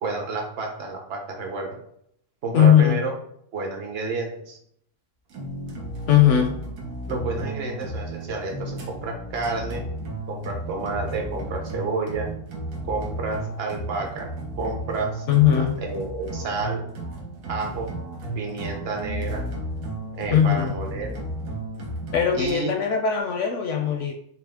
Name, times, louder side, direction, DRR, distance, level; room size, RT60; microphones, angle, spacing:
voice 1, 0.0-1.8 2.4-3.1 3.5-4.6 7.1-9.8 10.3-12.3 12.8-14.3 14.6-15.2 15.8-16.8 17.5-17.9 18.4-19.5 20.2-21.2 22.3-22.8, right 3 dB, 50° right, 1 dB, 0.9 m, -30 dB
voice 2, 2.5-3.0 6.1-6.6 15.3-15.8 20.3-20.8 22.1-24.1, left 9 dB, 65° left, 3 dB, 0.8 m, -19 dB
sound 1, 5.3-22.5, right 1 dB, 80° right, 1.4 m, -34 dB
5.8 x 2.0 x 3.5 m, 0.71 s
omnidirectional pair, 1.6 m